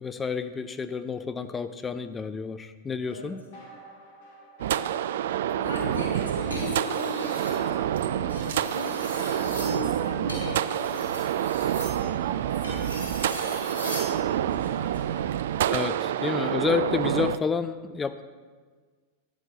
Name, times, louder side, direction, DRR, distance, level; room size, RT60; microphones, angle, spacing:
voice 1, 0.0-3.4 15.7-18.2, left 6 dB, 15° left, 11 dB, 0.5 m, -30 dB
sound 1, 3.5-14.8, right 1 dB, 50° left, 2.6 m, -48 dB
voice 2, 4.6-5.0 5.6-11.2 11.7-15.5 16.2-16.6, left 2 dB, 80° left, -1 dB, 2.3 m, -39 dB
sound 2, 4.6-17.4, right 11 dB, 60° right, 0.3 m, -28 dB
sound 3, 6.4-7.6 8.2-14.1 15.6-15.9, equal, 75° right, 3.8 m, -39 dB
11.0 x 11.0 x 4.3 m, 1.5 s
figure-of-eight pair, 90°, 0 cm